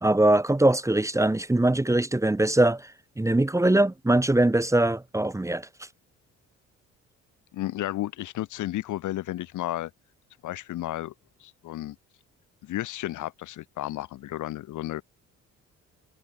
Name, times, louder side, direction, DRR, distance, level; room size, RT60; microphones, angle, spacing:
voice 1, 0.0-5.7, right 1 dB, 10° right, 1.2 m, -22 dB
voice 2, 7.5-9.9 10.4-11.1 11.4-11.9 12.6-15.0, left 14 dB, 80° left, 1.3 m, -32 dB
cardioid pair, 90°, 30 cm